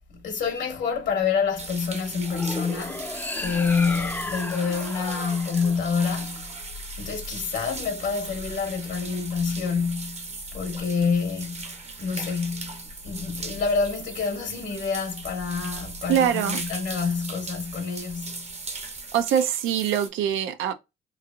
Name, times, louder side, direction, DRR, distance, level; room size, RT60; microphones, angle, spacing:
voice 1, 0.1-3.1 3.4-6.6 7.0-18.5, left 5 dB, 65° left, 1.0 m, -27 dB
sound 1, 1.6-20.1, right 4 dB, 35° right, 0.7 m, -38 dB
sound 2, 2.2-6.6, left 2 dB, 10° left, 0.4 m, -35 dB
voice 2, 16.1-16.6 19.1-20.7, right 9 dB, 85° right, 0.5 m, -23 dB
3.2 x 2.5 x 2.3 m
cardioid pair, 90°, 20 cm